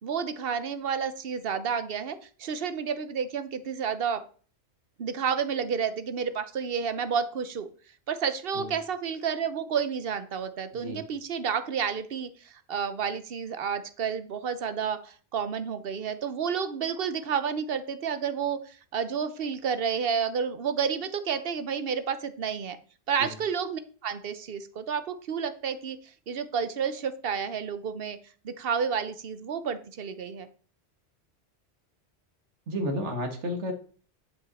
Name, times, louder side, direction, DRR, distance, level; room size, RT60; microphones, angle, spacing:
voice 1, 0.0-4.2 5.0-7.7 8.1-22.8 23.1-26.0 26.3-28.2 28.4-30.5, right 6 dB, 60° right, 11 dB, 1.0 m, -30 dB
voice 2, 10.7-11.0 23.2-23.3 32.7-33.7, equal, 85° right, 4 dB, 1.7 m, -32 dB
11.0 x 5.3 x 4.1 m, 0.42 s
omnidirectional pair, 1.2 m